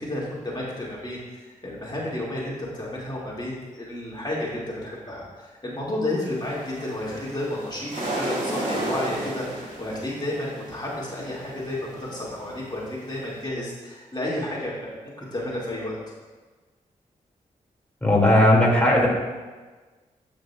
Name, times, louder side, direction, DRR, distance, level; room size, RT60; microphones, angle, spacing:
voice 1, 0.0-16.0, left 1 dB, 30° left, -5 dB, 2.0 m, -31 dB
sound 1, 6.4-13.4, right 1 dB, 60° right, 2.2 m, -34 dB
voice 2, 18.0-19.1, left 1 dB, 10° left, -3 dB, 2.0 m, -17 dB
14.0 x 5.2 x 2.3 m, 1.3 s
supercardioid pair, 40°, 15 cm